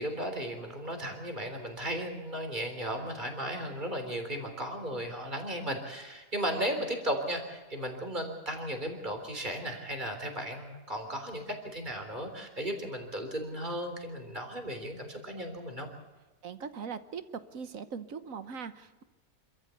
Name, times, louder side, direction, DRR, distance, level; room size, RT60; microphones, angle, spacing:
voice 1, 0.0-15.9, equal, 25° right, 5 dB, 3.8 m, -35 dB
voice 2, 16.4-17.2 17.5-19.0, right 6 dB, 55° right, 12 dB, 1.4 m, -40 dB
27.0 x 14.0 x 8.3 m, 1.2 s
omnidirectional pair, 1.8 m